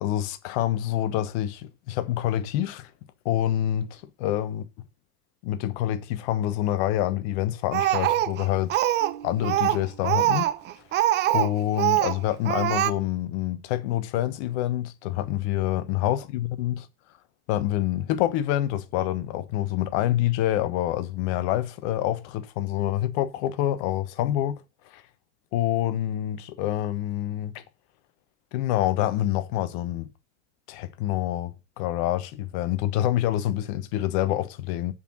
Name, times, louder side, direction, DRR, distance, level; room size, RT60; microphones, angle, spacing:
voice 1, 0.0-2.9 3.2-4.6 5.4-8.8 9.2-10.5 11.3-16.9 17.5-24.6 24.9-25.0 25.5-27.6 28.5-30.1 30.7-34.9, left 13 dB, 50° left, 1.1 m, -27 dB
Speech, 7.7-9.2 9.4-11.5 11.8-12.2 12.5-12.9, right 14 dB, 25° right, 0.5 m, -23 dB
Marimba xylophone, 9.0-11.0, right 9 dB, 70° right, 1.5 m, -47 dB
7.2 x 5.6 x 6.2 m
figure-of-eight pair, 80°, 43 cm